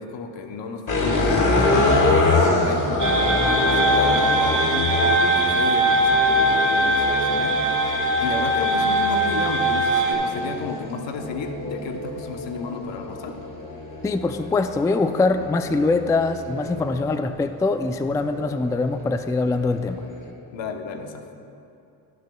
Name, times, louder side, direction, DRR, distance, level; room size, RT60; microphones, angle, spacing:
voice 1, 0.0-7.9 8.2-13.3 20.5-21.3, left 4 dB, 70° left, 5 dB, 1.0 m, -33 dB
sound 1, 0.9-17.2 17.8-20.3, left 2 dB, 40° left, 1.8 m, -26 dB
sound 2, 3.0-10.1, right 1 dB, 40° right, 1.8 m, -21 dB
voice 2, 14.0-20.0, left 3 dB, 10° left, 9 dB, 0.3 m, -23 dB
16.0 x 6.5 x 2.3 m, 2.7 s
supercardioid pair, 55°, 46 cm